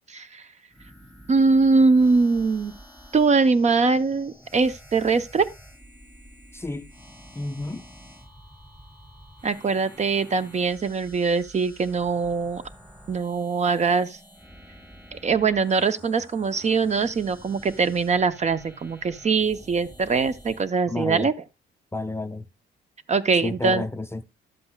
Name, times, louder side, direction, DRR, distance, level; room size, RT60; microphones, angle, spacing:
voice 1, 0.1-0.4 1.3-2.7 3.1-5.5 9.4-12.6 13.1-14.2 15.1-21.3 23.1-23.8, right 4 dB, 35° right, 0.6 m, -22 dB
sound 1, 0.7-20.7, equal, 10° right, 2.3 m, -49 dB
voice 2, 6.5-6.9 7.4-7.9 20.9-21.3 21.9-22.5 23.4-24.2, left 2 dB, 10° left, 0.5 m, -30 dB
11.5 x 7.7 x 2.2 m
cardioid pair, 90°, 20 cm